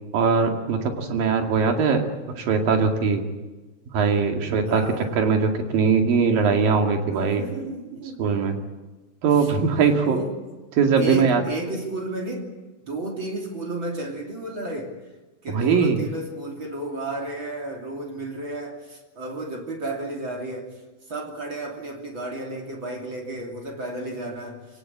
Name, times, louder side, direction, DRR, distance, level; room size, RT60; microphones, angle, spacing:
voice 1, 0.1-3.2 3.9-4.8 5.2-7.5 8.2-8.6 9.2-10.2 10.8-11.4 15.5-16.0, right 5 dB, 55° right, 4 dB, 3.5 m, -21 dB
voice 2, 4.7-5.1 7.1-8.2 9.3-9.5 10.0-10.4 11.0-12.5 12.9-14.9 15.4-20.8 21.1-24.8, right 2 dB, 30° right, 1 dB, 2.8 m, -32 dB
24.0 x 18.5 x 8.6 m, 1.2 s
omnidirectional pair, 5.5 m